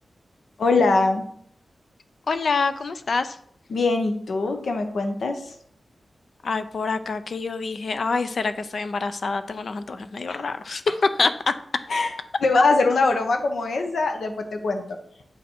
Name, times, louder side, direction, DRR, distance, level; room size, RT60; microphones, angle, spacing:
voice 1, 0.6-1.2 3.7-5.4 10.3-10.4 11.9-12.1 12.4-15.0, left 3 dB, 80° left, 6 dB, 0.9 m, -22 dB
voice 2, 2.3-3.4 6.4-10.8 11.2-11.5, left 4 dB, 55° left, 11 dB, 0.5 m, -26 dB
7.5 x 5.5 x 4.4 m, 0.64 s
wide cardioid pair, 175°, 0 cm